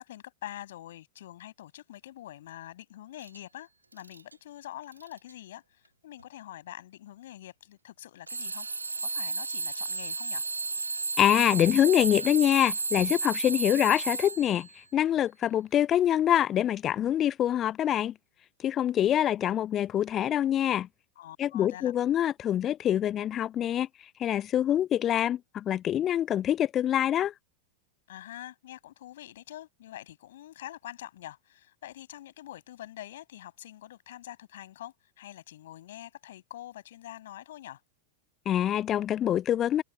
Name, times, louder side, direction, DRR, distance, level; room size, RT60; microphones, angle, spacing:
voice 1, 0.0-8.7 9.0-10.4 21.2-21.9 28.1-37.8, left 13 dB, 60° left, 7.5 m, -45 dB
Alarm / Clock, 3.2-3.4 3.9-4.3 4.9-5.3 6.2-6.3 8.3-14.7, right 3 dB, 80° right, 1.7 m, -33 dB
voice 2, 11.2-14.7 14.9-18.1 18.6-20.9 21.4-23.9 24.2-27.3 38.5-39.8, left 11 dB, 30° left, 0.9 m, -25 dB
figure-of-eight pair, 90°, 0 cm